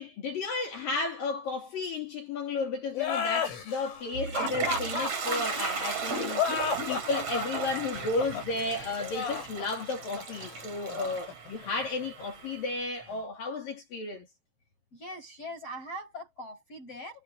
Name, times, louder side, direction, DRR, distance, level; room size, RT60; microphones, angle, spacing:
voice 1, 0.0-6.5 6.9-14.3, left 3 dB, 50° left, 4.0 m, -33 dB
sound 1, 2.9-12.2, left 6 dB, 80° left, 10.5 m, -33 dB
Toilet flush, 3.9-12.7, right 5 dB, 35° right, 3.6 m, -36 dB
voice 2, 14.9-17.2, equal, 30° left, 8.0 m, -41 dB
omnidirectional pair, 5.9 m